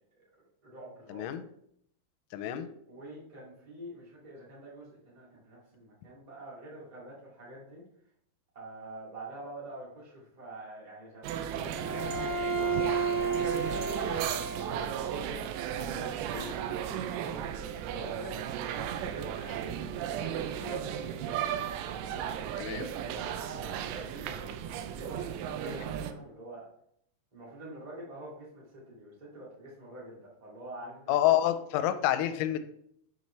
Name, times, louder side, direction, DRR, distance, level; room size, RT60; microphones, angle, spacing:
voice 1, 0.2-1.5 2.3-7.8 8.5-15.4 15.7-17.4 17.9-22.4 22.9-26.6 27.3-31.2 32.3-32.6, right 1 dB, 25° right, -6 dB, 0.8 m, -47 dB
voice 2, 1.1-1.4 2.3-2.7 16.3-16.5 20.6-20.8 22.6-22.9 25.7-25.8 31.1-32.6, left 12 dB, 85° left, 10 dB, 3.0 m, -28 dB
sound 1, 11.2-26.1, right 9 dB, 85° right, 2.5 m, -35 dB
Bowed string instrument, 11.7-15.1, right 4 dB, 50° right, 2.8 m, -32 dB
7.4 x 5.3 x 3.2 m, 0.70 s
omnidirectional pair, 5.5 m